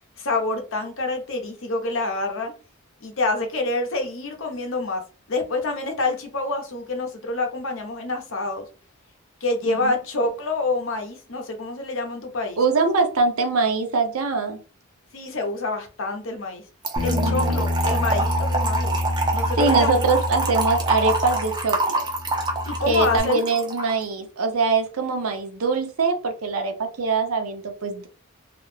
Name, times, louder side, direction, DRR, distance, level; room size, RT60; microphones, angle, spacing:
voice 1, 0.2-2.5 3.0-5.0 5.3-8.6 9.4-12.6 15.1-16.6 17.0-19.0 19.3-20.1 22.7-23.4, left 2 dB, 65° left, 4 dB, 0.7 m, -27 dB
voice 2, 12.6-14.6 17.1-17.7 19.6-22.1 22.9-28.1, right 4 dB, 80° right, 6 dB, 0.6 m, -23 dB
Trickle dribble / Fill (with liquid), 16.8-23.9, right 3 dB, 20° right, 0.4 m, -26 dB
Bass guitar, 17.0-21.7 22.0-23.2, left 1 dB, 25° left, 0.7 m, -27 dB
2.4 x 2.0 x 3.1 m, 0.36 s
head